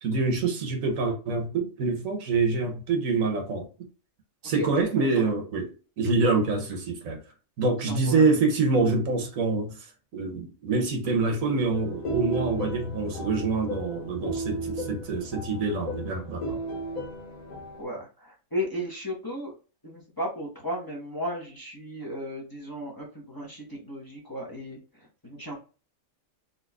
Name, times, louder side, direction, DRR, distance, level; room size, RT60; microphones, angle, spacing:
voice 1, 0.0-3.7 4.4-5.7 6.0-7.2 7.6-16.6, right 3 dB, 85° right, 1.3 m, -26 dB
voice 2, 4.5-4.9 5.2-5.3 7.9-8.3 17.8-19.5 19.8-25.5, equal, 20° left, 0.9 m, -35 dB
sound 1, 11.7-17.8, right 1 dB, 75° left, 1.5 m, -34 dB
3.9 x 2.8 x 2.3 m
omnidirectional pair, 1.4 m